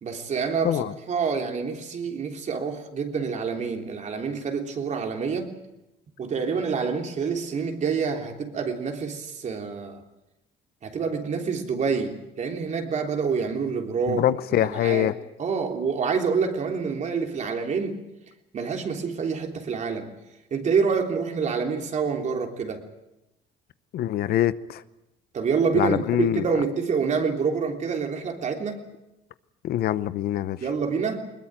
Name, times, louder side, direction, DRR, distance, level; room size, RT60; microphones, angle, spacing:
voice 1, 0.0-5.5 6.2-10.0 10.8-14.3 14.5-15.1 15.4-18.0 18.5-20.1 20.5-22.8 25.3-28.9 30.6-31.3, right 5 dB, 45° right, 3.4 m, -27 dB
voice 2, 14.1-15.1 23.9-24.8 25.7-26.5 29.6-30.6, left 12 dB, 65° left, 0.9 m, -24 dB
21.0 x 20.5 x 9.0 m
cardioid pair, 110°, 17 cm